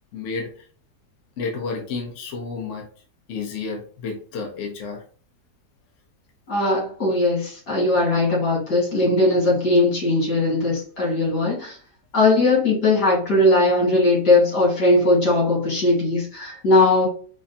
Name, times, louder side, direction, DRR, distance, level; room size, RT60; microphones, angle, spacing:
voice 1, 0.1-0.5 1.4-2.9 3.3-5.0, left 4 dB, 55° left, 2 dB, 1.0 m, -30 dB
voice 2, 6.5-11.8 12.1-17.1, left 2 dB, 85° left, -4 dB, 2.5 m, -19 dB
4.9 x 2.1 x 2.7 m, 0.42 s
omnidirectional pair, 1.7 m